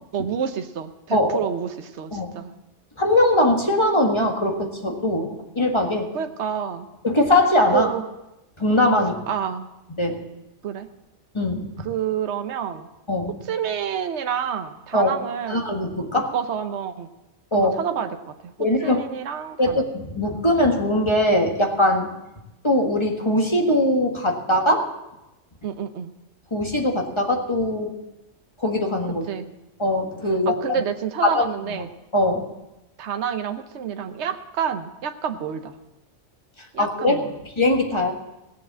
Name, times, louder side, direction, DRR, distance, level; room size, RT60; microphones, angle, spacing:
voice 1, 0.1-2.5 6.1-6.9 7.7-8.1 9.3-9.7 10.6-10.9 11.8-12.9 13.5-15.7 16.3-17.1 17.5-18.5 18.8-19.8 25.6-26.1 29.3-29.5 30.5-31.9 33.0-35.8 36.7-37.4, right 8 dB, 65° right, 7 dB, 1.1 m, -28 dB
voice 2, 3.0-6.1 7.0-7.9 8.6-9.2 10.0-10.2 11.3-11.7 13.1-13.3 14.9-15.1 15.5-16.3 17.5-17.7 18.6-19.0 19.6-22.1 22.6-24.9 26.5-27.9 28.6-29.2 29.8-30.5 31.2-31.4 32.1-32.5 36.8-37.2 37.6-38.1, left 1 dB, 25° left, 2 dB, 1.6 m, -21 dB
17.0 x 7.6 x 7.4 m, 0.95 s
omnidirectional pair, 1.2 m